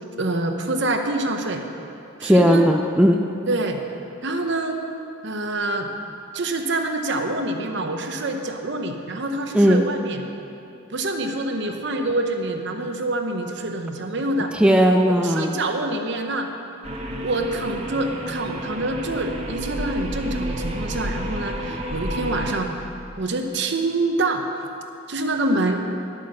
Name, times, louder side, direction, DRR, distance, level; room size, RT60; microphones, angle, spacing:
voice 1, 0.2-1.6 2.2-2.6 3.5-3.8 4.2-4.8 5.2-5.9 6.3-10.2 10.9-14.5 15.2-16.5 17.2-22.9 23.2-24.4 25.1-25.9, right 2 dB, 60° right, 4 dB, 1.0 m, -26 dB
voice 2, 2.2-3.2 9.5-9.8 14.5-15.5, equal, 5° right, 2 dB, 0.5 m, -16 dB
sound 1, 16.8-22.6, equal, 30° right, 1.0 m, -30 dB
11.5 x 8.4 x 6.4 m, 2.6 s
head